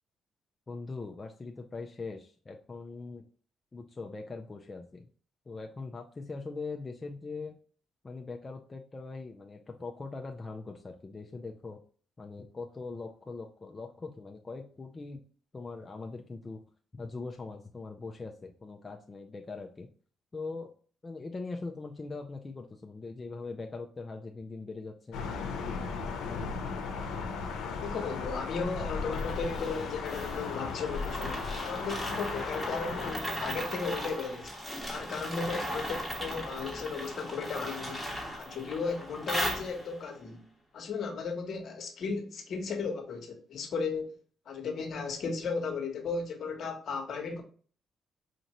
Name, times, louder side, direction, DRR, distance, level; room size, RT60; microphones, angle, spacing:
voice 1, 0.7-3.2 3.7-5.1 5.5-7.6 8.0-11.8 12.2-15.2 15.5-16.6 16.9-19.9 20.3-20.7 21.0-25.2, left 3 dB, 25° left, 0.5 m, -41 dB
Thunder, 25.1-33.1, left 5 dB, 85° left, 0.8 m, -36 dB
voice 2, 27.8-31.4 31.7-34.5 34.9-38.0 38.4-40.4 40.7-44.2 44.5-47.4, left 4 dB, 60° left, 1.1 m, -35 dB
sound 1, 29.1-40.1, equal, 10° right, 1.4 m, -37 dB
5.2 x 2.6 x 3.0 m
cardioid pair, 90°, 0 cm